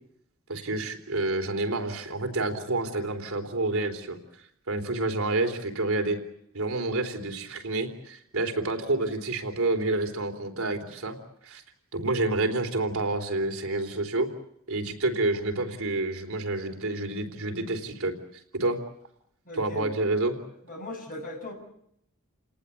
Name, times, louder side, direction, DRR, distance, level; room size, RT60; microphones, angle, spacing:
voice 1, 0.5-4.2 4.7-6.2 6.5-11.2 11.4-11.6 11.9-14.3 14.7-18.1 18.5-18.8 19.6-20.4, right 2 dB, 70° right, 4 dB, 3.7 m, -28 dB
voice 2, 19.5-19.9 20.7-21.5, left 1 dB, 40° left, 2 dB, 7.6 m, -38 dB
30.0 x 18.5 x 8.4 m, 0.74 s
head